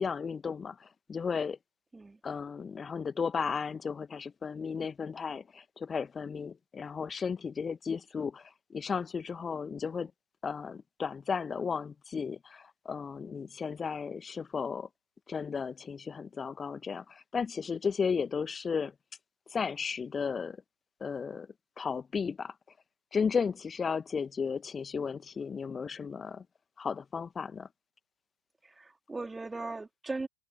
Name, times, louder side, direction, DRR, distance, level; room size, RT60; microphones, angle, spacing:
voice 1, 0.0-1.6 2.2-8.4 8.7-10.1 10.4-14.9 15.3-18.9 19.5-20.6 21.0-21.5 21.8-22.5 23.1-26.4 26.8-27.7, left 6 dB, 15° left, 1.4 m, -34 dB
voice 2, 28.8-30.3, right 3 dB, 10° right, 4.0 m, -38 dB
figure-of-eight pair, 90°, 0 cm